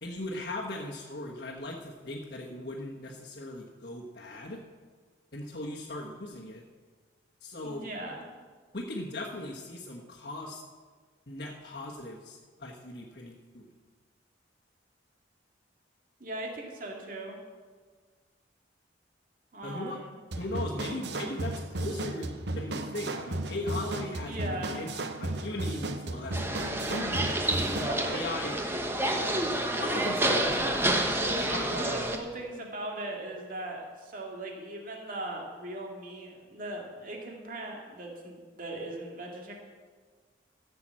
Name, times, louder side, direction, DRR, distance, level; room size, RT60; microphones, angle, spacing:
voice 1, 0.0-4.6 5.3-6.6 7.4-7.9 8.7-10.6 11.3-13.7 19.6-20.0 20.4-26.4 26.8-27.5 28.1-28.6 29.8-32.2, left 1 dB, 55° left, -4 dB, 1.3 m, -38 dB
voice 2, 7.6-8.3 16.2-17.4 19.5-20.1 24.2-24.8 27.8-29.5 31.2-39.5, right 1 dB, 45° right, 0 dB, 2.2 m, -39 dB
sound 1, 20.3-28.0, right 2 dB, 65° right, 0.9 m, -35 dB
sound 2, 26.3-32.2, right 1 dB, 15° right, 1.0 m, -29 dB
14.5 x 7.0 x 7.5 m, 1.5 s
head